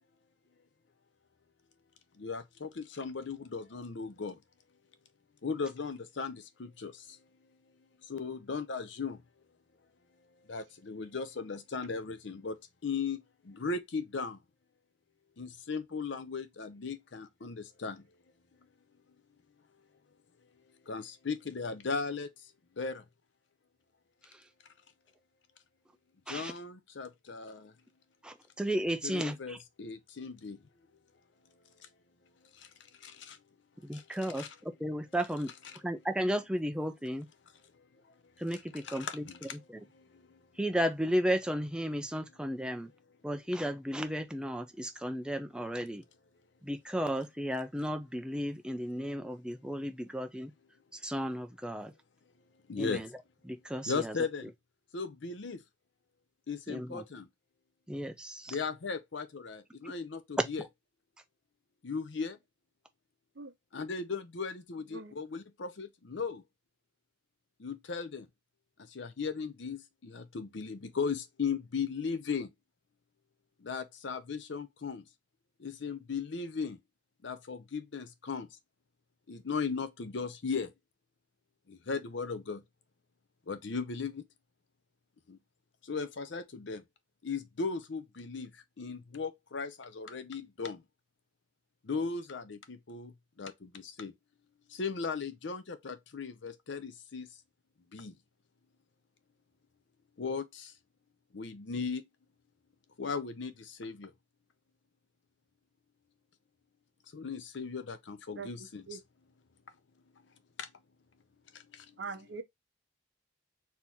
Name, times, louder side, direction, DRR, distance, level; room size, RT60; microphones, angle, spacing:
voice 1, 2.2-4.4 5.4-7.2 8.1-9.2 10.5-14.4 15.4-18.0 20.9-22.3 22.8-23.0 26.3-27.7 29.0-30.6 31.8-31.9 32.5-32.7 33.0-33.4 33.9-34.5 38.8-39.6 40.0-40.4 52.7-53.0 53.9-54.5 54.9-55.6 56.5-57.3 58.5-60.6 61.8-62.4 63.7-66.4 67.6-68.3 68.9-72.5 73.6-75.0 75.6-76.8 77.2-78.5 79.3-80.7 81.7-82.6 83.5-84.3 85.3-85.4 85.8-86.8 87.2-88.5 88.8-90.8 91.8-94.1 94.7-97.3 97.9-98.2 100.2-100.7 101.3-102.1 103.0-104.1 107.1-109.0 110.6-110.7 111.5-111.9, left 5 dB, 65° left, 0.6 m, -37 dB
voice 2, 28.2-29.6 33.8-35.5 35.8-37.3 38.4-39.8 40.6-42.9 43.2-46.0 46.6-50.5 50.9-51.9 52.8-53.1 53.5-54.2 56.7-57.0 57.9-58.6, equal, 5° right, 0.5 m, -34 dB
voice 3, 112.0-112.4, right 4 dB, 65° right, 0.7 m, -41 dB
4.3 x 2.9 x 3.5 m
head